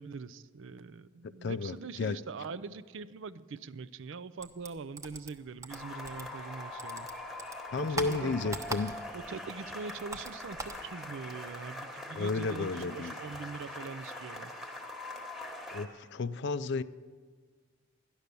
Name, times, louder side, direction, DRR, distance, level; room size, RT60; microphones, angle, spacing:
voice 1, 0.0-7.1 7.8-8.4 8.6-8.8 9.1-14.5, right 4 dB, 60° right, 16 dB, 0.5 m, -43 dB
voice 2, 1.2-2.2 7.7-8.9 12.1-13.1 15.7-16.8, left 4 dB, 55° left, 15 dB, 0.4 m, -33 dB
sound 1, 4.4-6.5 6.8-9.3 9.6-10.8, right 2 dB, 15° right, 0.9 m, -41 dB
sound 2, 5.7-15.9, left 1 dB, ahead, 1.3 m, -43 dB
13.0 x 10.5 x 6.8 m, 1.6 s
head